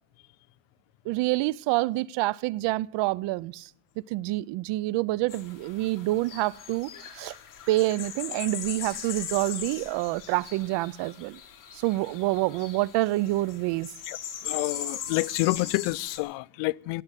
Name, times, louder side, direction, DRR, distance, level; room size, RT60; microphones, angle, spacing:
voice 1, 1.1-3.6 4.1-6.9 7.2-7.3 7.7-11.4 11.8-13.9, right 18 dB, 75° right, 0.6 m, -27 dB
sound 1, 5.3-16.2, left 9 dB, 45° left, 3.2 m, -39 dB
voice 2, 14.4-17.0, left 22 dB, 90° left, 0.6 m, -28 dB
16.5 x 7.8 x 9.9 m
cardioid pair, 125°, 43 cm